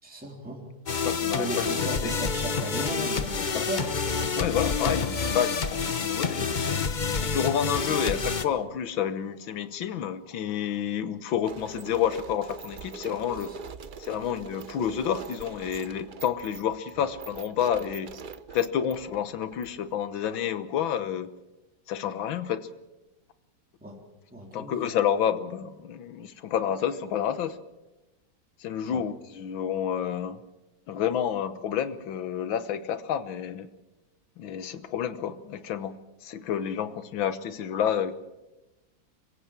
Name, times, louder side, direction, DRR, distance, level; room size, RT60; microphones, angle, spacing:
voice 1, 0.0-0.7 1.3-3.9 7.8-8.0 13.4-13.6 23.8-24.0 24.3-24.8 28.9-29.0, right 1 dB, 5° right, -1 dB, 3.5 m, -36 dB
sound 1, 0.9-8.4, left 5 dB, 35° left, 0.7 m, -28 dB
voice 2, 1.0-2.1 3.4-3.7 4.4-6.5 7.2-13.5 14.0-18.1 18.5-21.3 21.9-22.7 24.5-27.6 28.6-30.4 30.9-33.7 34.4-38.1, left 9 dB, 85° left, 13 dB, 1.8 m, -29 dB
sound 2, 11.4-19.9, right 5 dB, 70° right, 0.4 m, -43 dB
26.0 x 16.0 x 7.4 m, 1.0 s
omnidirectional pair, 2.1 m